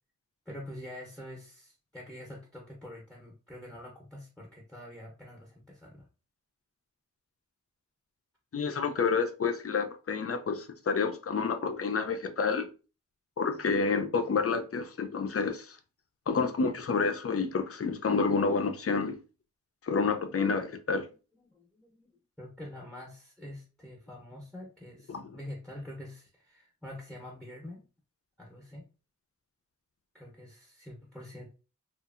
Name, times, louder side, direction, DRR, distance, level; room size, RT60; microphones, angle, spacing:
voice 1, 0.5-6.0 13.5-13.8 20.2-20.4 21.0-22.1 22.4-27.8 28.4-28.9 30.1-31.5, left 1 dB, 5° left, 0.7 m, -46 dB
voice 2, 8.5-12.7 13.4-15.8 16.3-19.2 19.8-21.1 25.1-25.2, left 5 dB, 50° left, 0.4 m, -29 dB
2.7 x 2.4 x 2.4 m
wide cardioid pair, 75°, 31 cm